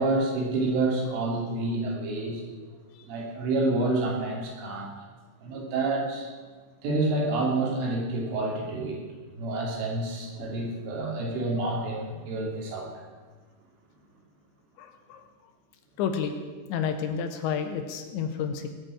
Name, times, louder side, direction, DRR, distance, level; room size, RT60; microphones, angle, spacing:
voice 1, 0.0-2.4 3.0-4.9 5.4-6.3 6.8-9.0 9.3-13.0, right 2 dB, 80° right, -2 dB, 5.4 m, -28 dB
voice 2, 14.8-15.2 16.0-16.3 16.7-18.7, left 7 dB, 75° left, 6 dB, 3.1 m, -30 dB
19.0 x 6.5 x 8.7 m, 1.4 s
omnidirectional pair, 5.7 m